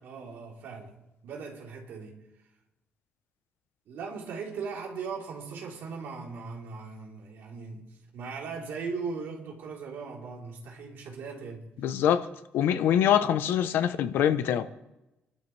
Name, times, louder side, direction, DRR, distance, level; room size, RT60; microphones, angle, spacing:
voice 1, 0.0-2.2 3.9-11.7, right 5 dB, 70° right, 3.9 m, -39 dB
voice 2, 11.8-12.2 12.5-14.7, left 10 dB, 90° left, 0.9 m, -24 dB
26.0 x 12.5 x 3.4 m
cardioid pair, 170°, 4 cm